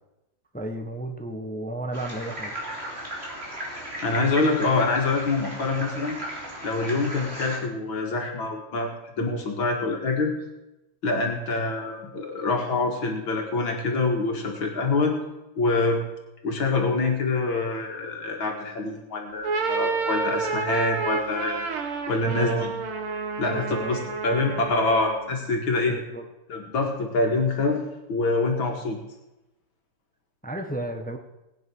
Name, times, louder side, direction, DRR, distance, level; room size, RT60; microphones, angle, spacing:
voice 1, 0.5-2.5 22.2-22.7 23.4-24.0 24.3-24.4 25.9-26.2 30.4-31.2, right 1 dB, 5° left, 5 dB, 0.9 m, -33 dB
sound 1, 1.9-7.6, right 1 dB, 30° right, 3.7 m, -36 dB
voice 2, 4.0-6.2 6.6-10.3 11.0-15.2 15.6-16.0 16.4-21.7 22.1-22.7 23.4-25.9 26.5-27.8 28.1-29.0, left 3 dB, 70° left, 1 dB, 2.7 m, -25 dB
sound 2, 19.3-25.3, right 4 dB, 85° right, 2.3 m, -29 dB
19.0 x 9.5 x 6.2 m, 0.96 s
omnidirectional pair, 2.3 m